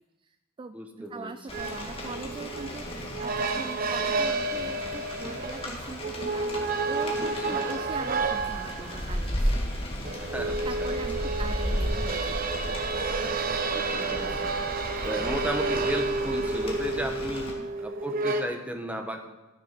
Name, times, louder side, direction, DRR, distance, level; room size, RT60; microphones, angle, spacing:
voice 1, 0.2-9.6 10.6-12.5 13.2-13.6 17.4-17.7, right 3 dB, 25° right, 10 dB, 0.3 m, -42 dB
voice 2, 0.7-1.3 7.4-7.6 10.2-10.9 13.7-14.5 15.0-17.5 17.8-19.3, equal, 5° right, 4 dB, 1.0 m, -34 dB
Rain, 1.5-17.5, equal, 30° left, 1.9 m, -35 dB
sound 1, 1.5-18.4, right 3 dB, 45° right, 0.7 m, -31 dB
sound 2, 9.7-14.5, left 1 dB, 65° left, 2.2 m, -51 dB
12.0 x 6.9 x 5.8 m, 1.1 s
head